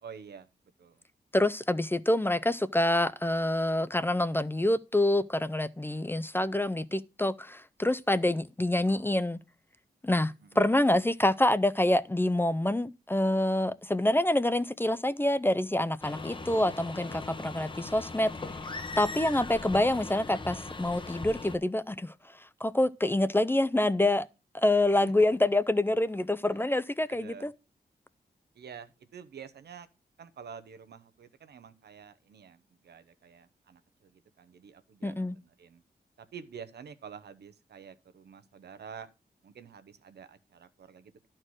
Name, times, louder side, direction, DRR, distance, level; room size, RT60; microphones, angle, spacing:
voice 1, 0.0-0.5 0.8-1.0 10.4-10.6 26.5-27.5 28.5-29.9 30.2-35.8 36.2-39.1 39.4-41.3, right 7 dB, 85° right, 0.9 m, -48 dB
voice 2, 1.3-9.4 10.0-18.3 19.0-22.1 22.6-24.3 24.5-27.5 35.0-35.4, left 1 dB, 15° left, 0.5 m, -26 dB
sound 1, 16.0-21.6, left 3 dB, 30° left, 0.9 m, -39 dB
11.5 x 4.4 x 6.2 m
cardioid pair, 85°, 17 cm